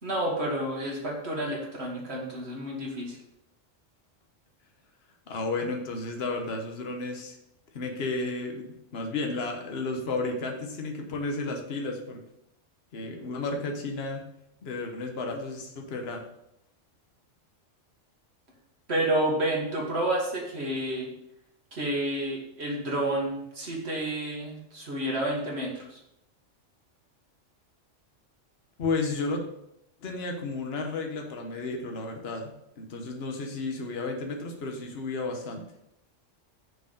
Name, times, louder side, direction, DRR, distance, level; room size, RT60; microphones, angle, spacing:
voice 1, 0.0-3.2 18.9-21.1 21.7-26.0, right 1 dB, 55° right, -3 dB, 1.9 m, -30 dB
voice 2, 5.3-7.4 7.7-12.2 12.9-14.3 14.6-16.2 28.8-29.4 30.0-35.7, left 3 dB, 55° left, 2 dB, 1.3 m, -33 dB
6.4 x 4.7 x 5.1 m, 0.81 s
omnidirectional pair, 1.3 m